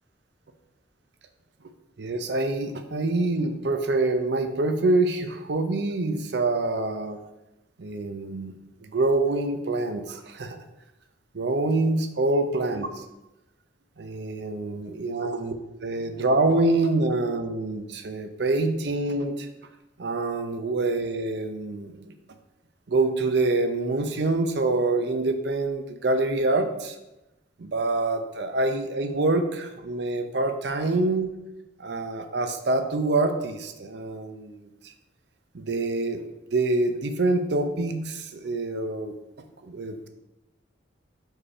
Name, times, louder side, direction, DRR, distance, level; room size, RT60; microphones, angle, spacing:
voice 1, 2.0-7.2 7.8-8.5 8.8-10.6 11.3-13.0 14.0-15.5 15.8-19.5 20.0-22.1 22.9-27.0 27.6-31.3 31.8-34.9 35.5-36.2 36.5-39.1 39.6-40.1, right 2 dB, 60° right, 7 dB, 0.6 m, -26 dB
4.9 x 4.8 x 4.3 m, 0.97 s
head